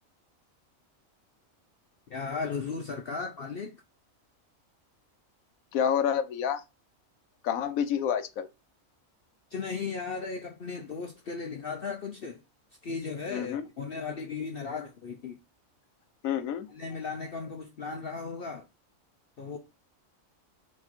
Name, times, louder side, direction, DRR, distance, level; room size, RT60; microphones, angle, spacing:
voice 1, 2.1-3.7 9.5-12.4 12.8-15.4 16.7-18.6 19.4-19.6, left 5 dB, 50° left, 0.8 m, -36 dB
voice 2, 5.7-6.6 7.4-8.5 13.3-13.6 16.2-16.7, left 8 dB, 85° left, 1.2 m, -28 dB
4.9 x 4.6 x 4.4 m
omnidirectional pair, 1.4 m